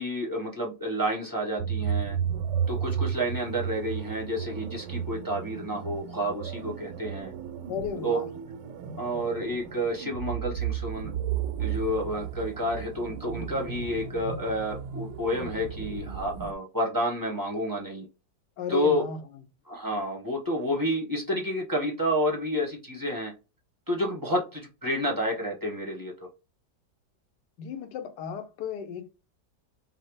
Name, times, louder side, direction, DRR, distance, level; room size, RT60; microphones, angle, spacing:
voice 1, 0.0-2.2 2.7-7.3 8.0-8.2 9.0-11.1 11.6-18.0 18.7-19.0 19.7-23.3 23.9-26.3, equal, 25° right, 0.5 m, -30 dB
sound 1, 1.6-16.5, right 8 dB, 90° right, 1.3 m, -34 dB
voice 2, 7.7-8.3 18.6-19.2 27.6-29.1, left 8 dB, 75° left, 1.3 m, -34 dB
5.5 x 2.0 x 3.1 m
omnidirectional pair, 1.9 m